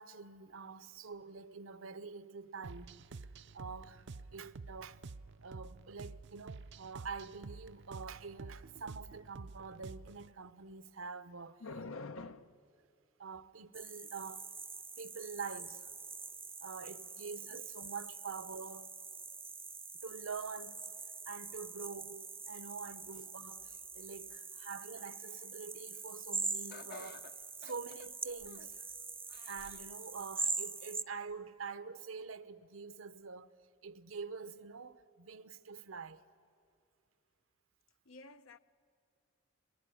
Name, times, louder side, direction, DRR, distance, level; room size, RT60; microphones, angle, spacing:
voice 1, 0.0-3.0 3.5-4.1 4.3-5.0 5.4-11.6 13.2-14.5 15.0-15.9 16.6-18.9 20.0-20.8 21.3-27.3 27.6-28.9 29.5-33.5 33.8-36.2, right 5 dB, 80° right, 0.9 m, -46 dB
sound 1, 2.6-10.3, right 3 dB, 60° right, 0.6 m, -49 dB
voice 2, 11.6-12.6 15.2-15.3 24.3-24.4 38.1-38.6, left 3 dB, 85° left, 0.9 m, -47 dB
sound 2, 13.7-31.0, right 4 dB, 10° right, 0.5 m, -44 dB
Laughter, 26.7-28.8 29.3-29.9 30.4-30.5 31.5-31.6, left 5 dB, 50° left, 0.6 m, -54 dB
23.5 x 20.5 x 9.9 m
head